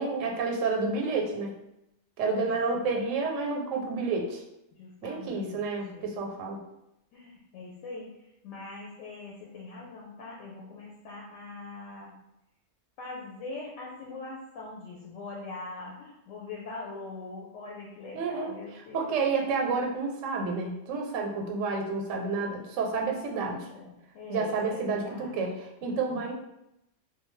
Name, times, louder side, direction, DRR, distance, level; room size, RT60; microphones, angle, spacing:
voice 1, 0.0-1.6 2.2-4.4 5.0-6.6 18.1-18.5 18.9-23.6 24.3-26.3, right 4 dB, 90° right, 1 dB, 0.9 m, -30 dB
voice 2, 2.3-2.9 4.7-5.6 5.9-6.1 7.1-12.2 13.0-19.1 23.0-25.4 26.1-26.3, left 3 dB, 75° left, -3 dB, 0.9 m, -43 dB
2.5 x 2.1 x 3.0 m, 0.86 s
omnidirectional pair, 1.3 m